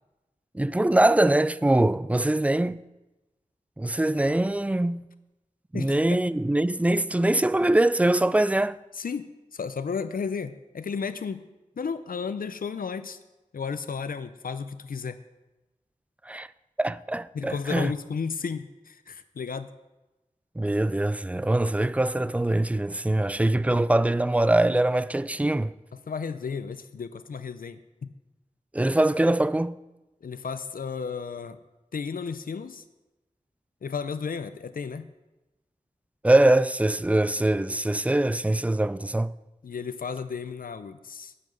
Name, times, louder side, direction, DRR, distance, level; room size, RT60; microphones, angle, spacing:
voice 1, 0.5-2.8 3.8-5.1 5.7-8.8 16.3-16.5 16.8-17.9 20.6-25.7 28.7-29.8 36.2-39.3, right 1 dB, 10° right, 0.3 m, -23 dB
voice 2, 5.7-6.2 8.9-11.5 11.8-13.2 13.5-15.2 17.3-19.7 26.1-28.1 30.2-31.6 31.9-32.8 33.8-35.1 39.6-41.3, left 5 dB, 90° left, 0.5 m, -33 dB
10.0 x 5.7 x 7.7 m
wide cardioid pair, 55°, 14 cm